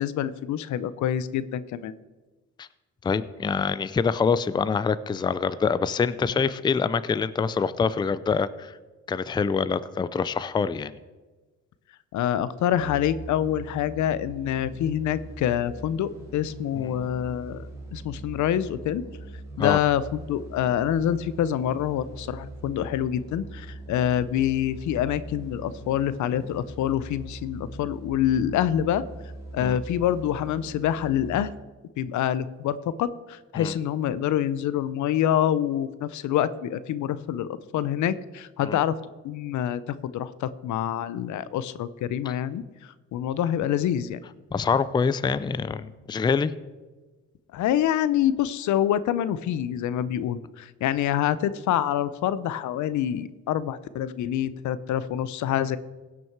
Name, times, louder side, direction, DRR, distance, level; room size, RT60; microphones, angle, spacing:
voice 1, 0.0-1.9 12.1-17.6 17.9-19.0 19.6-29.0 29.5-31.5 32.0-38.9 39.2-42.6 43.1-44.2 47.5-55.8, left 10 dB, 75° left, 16 dB, 0.6 m, -26 dB
voice 2, 3.0-8.8 9.1-11.0 16.8-17.0 19.6-19.8 29.6-29.8 33.6-33.7 38.6-38.8 44.5-46.5, left 5 dB, 15° left, 16 dB, 0.4 m, -25 dB
sound 1, 12.7-31.5, right 2 dB, 10° right, 3.4 m, -42 dB
16.5 x 6.1 x 4.6 m, 1.3 s
cardioid pair, 90°, 30 cm